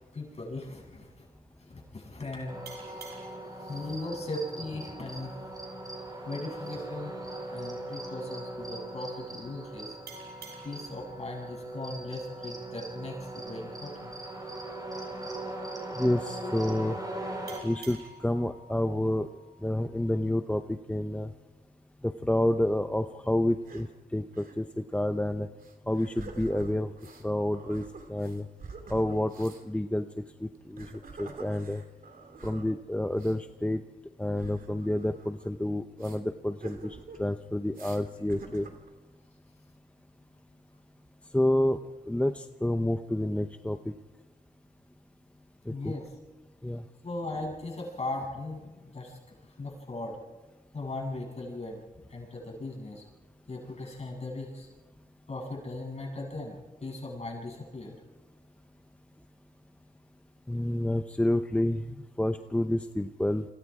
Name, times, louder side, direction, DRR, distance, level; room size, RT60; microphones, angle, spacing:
voice 1, 0.1-1.3 1.7-5.3 6.2-7.2 7.5-9.9 10.6-14.1 16.4-16.5 45.7-46.1 47.0-50.2 50.7-51.8 52.1-53.0 53.5-54.7 55.3-58.0, left 2 dB, 40° left, -1 dB, 7.8 m, -38 dB
sound 1, 2.5-17.6, right 2 dB, 25° right, 5.6 m, -40 dB
sound 2, 2.6-5.9 10.1-13.3 17.5-20.4, right 2 dB, 85° right, 6.0 m, -51 dB
voice 2, 16.0-17.0 17.6-19.3 19.6-21.3 22.0-23.9 24.1-25.5 25.9-26.9 27.2-27.8 28.1-28.5 28.9-30.0 30.4-30.9 31.2-31.8 32.4-33.8 34.2-38.7 41.3-41.8 42.1-43.8 45.7-45.9 46.6-46.8 60.5-63.5, left 1 dB, 10° left, 8 dB, 0.7 m, -29 dB
sound 3, 23.5-23.9 24.3-24.6 24.9-25.0 25.6-27.3 27.5-29.6 30.5-32.7 33.1-33.3 34.3-35.5 36.0-36.2 36.6-37.3 37.7-38.0 38.3-38.9, right 4 dB, 65° right, 3.0 m, -47 dB
29.0 x 25.0 x 4.9 m, 1.3 s
wide cardioid pair, 100°, 16 cm